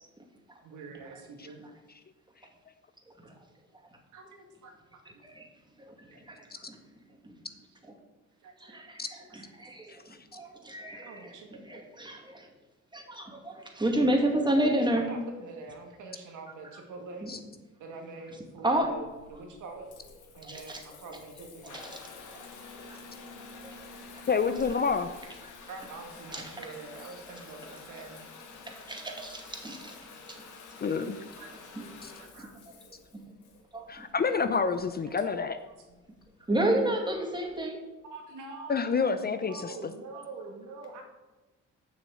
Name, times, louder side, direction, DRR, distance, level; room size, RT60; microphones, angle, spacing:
voice 1, 0.6-1.6 4.1-4.7 5.1-5.2 6.1-6.4 8.4-8.9 10.9-11.6 14.1-14.4 15.0-17.3 17.8-19.9 20.4-21.9 25.7-28.3 31.4-32.5 35.9-36.0 38.0-41.0, right 3 dB, 85° right, 2 dB, 2.2 m, -45 dB
voice 2, 5.8-6.8 7.2-7.4 8.6-9.9 10.3-11.3 11.6-12.5 12.9-15.0 17.2-17.3 18.6-18.9 20.4-20.8 21.7-22.0 23.6-23.8 26.3-26.5 27.6-27.8 28.9-30.0 31.8-31.9 32.4-32.5 33.1-33.2 33.7-34.1 36.5-37.8, right 1 dB, 15° right, 2 dB, 2.1 m, -30 dB
Water tap faucet / Bathtub (filling or washing) / Trickle dribble, 18.8-37.7, left 4 dB, 75° left, 1.7 m, -49 dB
voice 3, 24.3-25.1 30.8-31.2 32.0-32.1 33.9-35.6 38.7-39.9, left 5 dB, 30° left, 10 dB, 0.6 m, -28 dB
7.3 x 6.1 x 7.8 m, 1.2 s
cardioid pair, 90°, 30 cm